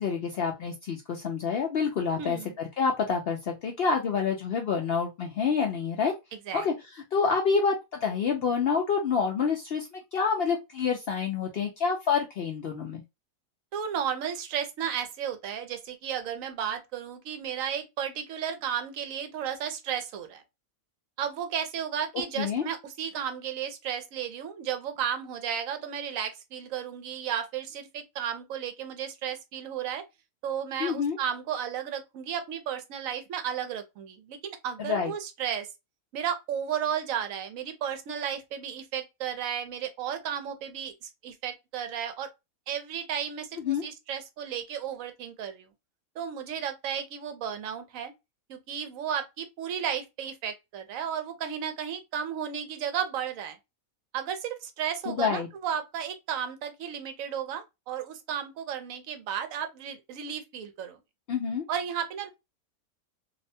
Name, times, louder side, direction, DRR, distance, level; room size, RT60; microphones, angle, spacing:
voice 1, 0.0-6.1 6.5-13.0 22.4-22.6 30.8-31.2 34.8-35.1 43.6-43.8 55.1-55.5 61.3-61.7, left 5 dB, 70° left, 0.5 m, -28 dB
voice 2, 2.2-2.5 6.5-6.7 13.7-20.4 21.2-30.0 30.4-35.7 36.1-42.3 42.7-45.7 46.2-48.1 48.5-53.6 54.1-61.0 61.7-62.3, right 8 dB, 70° right, 1.0 m, -33 dB
2.6 x 2.1 x 2.6 m
omnidirectional pair, 1.5 m